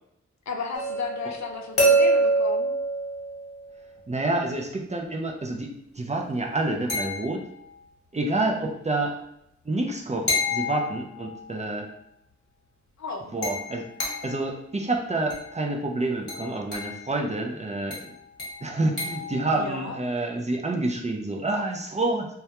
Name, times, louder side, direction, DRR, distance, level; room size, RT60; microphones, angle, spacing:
voice 1, 0.5-2.7 13.0-13.4 19.5-20.0, left 4 dB, 70° left, 4 dB, 0.5 m, -33 dB
sound 1, 0.7-3.8 6.9-7.7 10.3-11.5 13.4-14.5 15.3-15.6 16.3-17.0 17.9-19.4, right 1 dB, 50° left, 1.1 m, -27 dB
voice 2, 4.1-7.4 8.1-9.1 9.7-11.9 13.3-13.9 14.2-18.0 18.6-22.3, right 2 dB, 25° right, 1 dB, 0.4 m, -28 dB
2.2 x 2.1 x 2.8 m, 0.79 s
cardioid pair, 45°, 29 cm